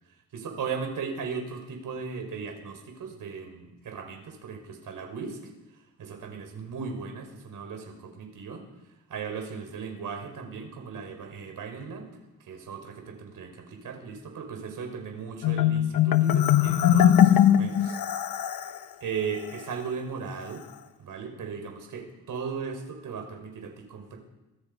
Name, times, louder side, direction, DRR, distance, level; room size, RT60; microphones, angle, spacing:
voice 1, 0.3-5.4 6.0-8.7 9.1-12.1 12.5-18.0 19.0-20.6 21.0-24.2, right 5 dB, 65° right, 4 dB, 5.7 m, -37 dB
Marimba xylophone, 15.4-18.8, left 10 dB, 75° left, 1.2 m, -20 dB
30.0 x 24.5 x 5.5 m, 1.0 s
wide cardioid pair, 160°, 36 cm